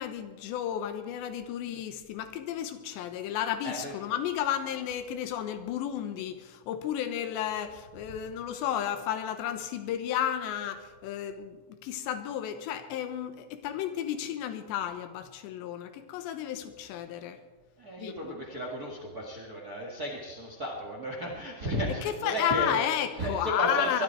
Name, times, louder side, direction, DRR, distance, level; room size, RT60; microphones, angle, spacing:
voice 1, 0.0-17.4 18.0-18.2 22.0-24.0, left 10 dB, 85° left, 8 dB, 3.3 m, -32 dB
voice 2, 17.8-22.8 23.2-24.0, equal, 45° right, 0 dB, 1.2 m, -34 dB
22.5 x 12.0 x 4.6 m, 1.3 s
omnidirectional pair, 4.9 m